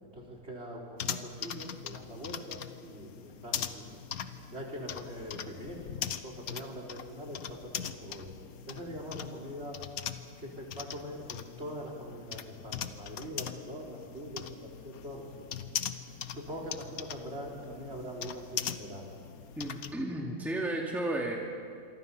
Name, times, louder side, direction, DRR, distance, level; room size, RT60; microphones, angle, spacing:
voice 1, 0.0-4.1 4.5-8.3 8.7-9.8 10.4-15.4 16.3-19.1, equal, 45° right, 0 dB, 4.2 m, -43 dB
sound 1, 1.0-19.9, left 8 dB, 70° left, 1.3 m, -41 dB
voice 2, 19.6-21.4, right 1 dB, ahead, -2 dB, 2.4 m, -33 dB
27.0 x 24.0 x 5.6 m, 2.3 s
omnidirectional pair, 1.6 m